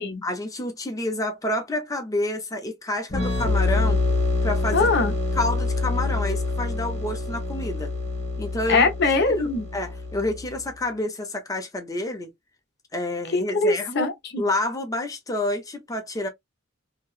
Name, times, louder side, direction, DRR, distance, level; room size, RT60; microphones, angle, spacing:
voice 1, 0.2-4.0 4.4-4.9 5.3-7.9 8.4-8.9 9.4-12.3 12.9-16.3, left 1 dB, 15° left, 0.6 m, -29 dB
sound 1, 3.1-10.6, left 3 dB, 35° left, 1.3 m, -26 dB
voice 2, 4.7-5.1 8.7-9.7 13.3-14.4, left 3 dB, 55° left, 0.7 m, -22 dB
3.0 x 2.8 x 2.4 m
head